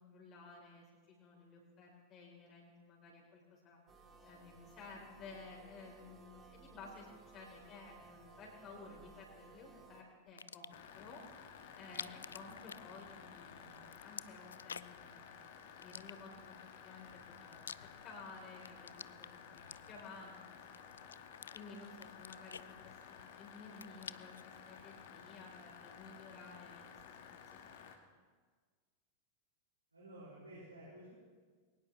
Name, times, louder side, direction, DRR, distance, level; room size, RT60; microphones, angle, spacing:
voice 1, 0.0-3.8 4.2-7.1 7.3-11.2 11.8-16.6 16.8-17.7 18.0-20.9 21.5-27.2 27.5-27.7, left 3 dB, 30° left, -1 dB, 3.9 m, -55 dB
sound 1, 3.9-10.0, right 3 dB, 20° right, 2.6 m, -59 dB
sound 2, 10.3-10.9 11.8-13.4 13.7-15.1 15.8-16.6 17.2-18.3 18.6-20.2 20.7-21.6 22.0-23.3 23.6-24.5, left 7 dB, 70° left, 0.4 m, -49 dB
sound 3, 10.7-28.0, left 7 dB, 55° left, 1.8 m, -55 dB
voice 2, 29.9-31.1, right 1 dB, 80° right, -8 dB, 5.8 m, -53 dB
22.0 x 19.0 x 3.3 m, 1.5 s
figure-of-eight pair, 90°, 0 cm